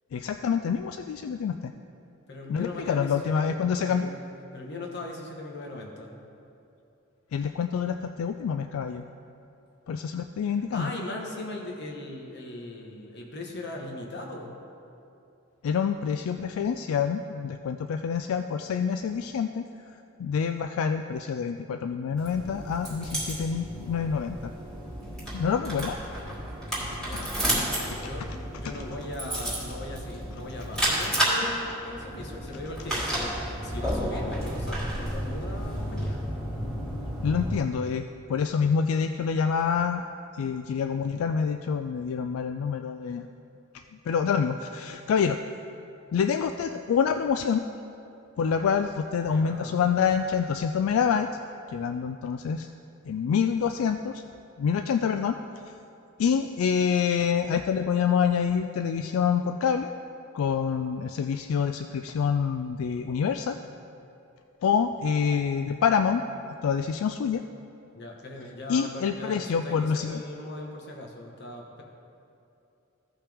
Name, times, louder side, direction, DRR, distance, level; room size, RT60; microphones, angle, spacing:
voice 1, 0.1-1.7 2.5-4.1 7.3-9.0 9.9-10.9 15.6-19.6 20.2-24.5 25.3-26.0 26.8-27.2 37.2-40.0 40.3-43.3 44.1-45.4 46.1-47.6 48.4-51.3 51.7-52.7 53.0-54.2 54.6-55.4 56.2-59.9 60.3-63.6 64.6-66.2 66.6-67.4 68.7-70.2, left 6 dB, 85° left, 7 dB, 0.3 m, -27 dB
voice 2, 2.3-3.5 3.8-4.1 4.5-6.1 10.7-14.6 27.0-36.2 49.2-49.9 67.9-71.8, left 2 dB, 55° left, 0 dB, 1.3 m, -39 dB
sound 1, 22.2-37.6, right 1 dB, ahead, 2.3 m, -32 dB
15.0 x 5.6 x 3.5 m, 2.8 s
head